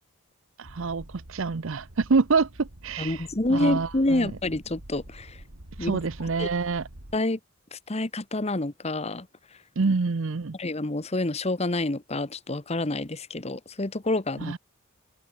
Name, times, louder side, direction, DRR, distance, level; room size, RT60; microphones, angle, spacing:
voice 1, 0.6-3.2 3.5-4.3 5.8-6.9 9.8-10.6 14.4-14.6, right 4 dB, 60° right, 0.6 m, -26 dB
sound 1, 0.6-7.2, right 1 dB, 75° right, 3.2 m, -47 dB
voice 2, 3.0-5.4 5.8-5.9 6.4-6.5 7.1-7.4 7.7-9.3 10.6-14.5, left 2 dB, 30° left, 1.1 m, -28 dB
open air
head